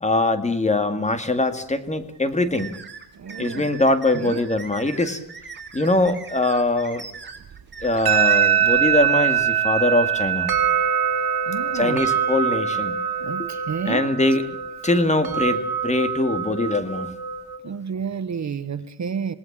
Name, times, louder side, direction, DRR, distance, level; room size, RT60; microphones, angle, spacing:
voice 1, 0.0-2.7 3.4-5.2 5.7-7.1 7.8-10.5 11.7-12.9 13.4-13.5 13.9-14.6 14.8-17.1, left 2 dB, 20° left, 9 dB, 2.1 m, -22 dB
sound 1, 2.5-8.5, right 5 dB, 30° right, 4.1 m, -40 dB
voice 2, 3.1-3.7 4.1-4.5 11.5-12.1 13.2-14.1 17.6-19.3, right 6 dB, 45° right, 13 dB, 1.2 m, -30 dB
sound 2, 7.8-17.6, right 9 dB, 65° right, 3.4 m, -23 dB
27.5 x 19.5 x 7.4 m, 0.68 s
cardioid pair, 120°, 39 cm